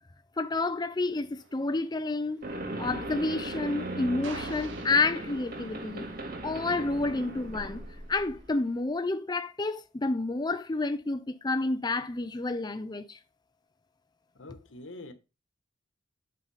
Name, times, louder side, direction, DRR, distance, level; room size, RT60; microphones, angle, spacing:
voice 1, 0.4-2.4 2.8-6.1 6.4-7.8 8.1-13.2, left 3 dB, 20° left, 0.5 m, -30 dB
sound 1, 1.4-8.8, right 4 dB, 75° right, 1.6 m, -50 dB
sound 2, 2.4-8.5, right 1 dB, 50° right, 2.0 m, -38 dB
voice 2, 14.3-15.1, left 2 dB, 85° left, 1.4 m, -45 dB
8.3 x 3.8 x 5.5 m
head